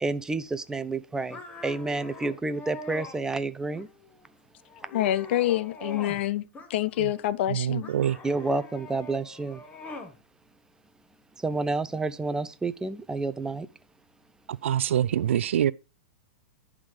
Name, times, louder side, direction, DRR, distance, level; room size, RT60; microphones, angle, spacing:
voice 1, 0.0-3.9 8.2-9.6 11.4-13.7, right 3 dB, 10° right, 0.5 m, -29 dB
sound 1, 1.3-3.2 3.7-4.3 4.7-6.3 6.5-7.2 7.8-10.2, left 2 dB, 20° left, 1.5 m, -42 dB
voice 2, 4.9-6.4 6.7-7.9, left 13 dB, 60° left, 0.5 m, -26 dB
voice 3, 7.5-8.2 14.5-15.7, right 10 dB, 75° right, 0.4 m, -25 dB
10.5 x 3.7 x 4.9 m
hypercardioid pair, 115°, 7 cm